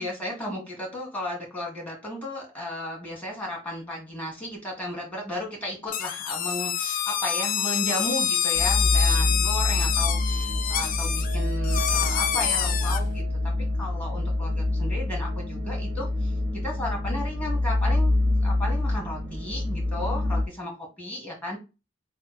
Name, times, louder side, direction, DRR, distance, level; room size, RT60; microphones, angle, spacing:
voice 1, 0.0-13.2 13.8-16.3 16.6-18.1 18.4-21.6, left 1 dB, 10° left, -1 dB, 1.7 m, -34 dB
sound 1, 5.9-13.0, left 9 dB, 45° left, 0.4 m, -27 dB
sound 2, 8.5-20.4, left 2 dB, 60° right, 0.8 m, -26 dB
3.6 x 2.2 x 4.2 m, 0.28 s
head